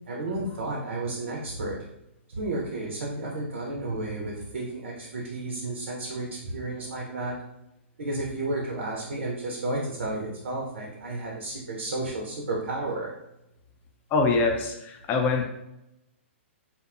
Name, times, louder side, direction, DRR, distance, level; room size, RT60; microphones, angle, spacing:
voice 1, 0.1-1.9 2.3-7.4 8.0-13.1, right 2 dB, 75° right, -2 dB, 0.6 m, -32 dB
voice 2, 14.1-15.5, left 4 dB, 30° left, 3 dB, 0.5 m, -24 dB
2.6 x 2.2 x 2.4 m, 0.85 s
hypercardioid pair, 120°, 7 cm